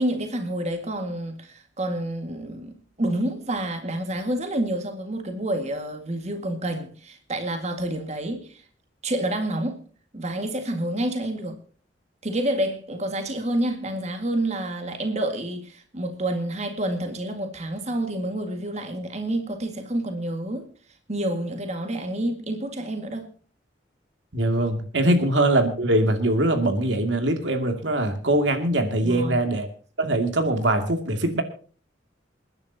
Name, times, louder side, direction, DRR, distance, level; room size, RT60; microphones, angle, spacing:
voice 1, 0.0-8.6 9.0-9.8 10.1-11.6 12.2-20.7 21.1-23.3 25.0-25.1 29.0-29.4, right 1 dB, 40° right, 2.0 m, -28 dB
voice 2, 24.3-29.7 30.0-31.4, right 1 dB, 90° right, 2.5 m, -22 dB
28.0 x 10.5 x 2.9 m
head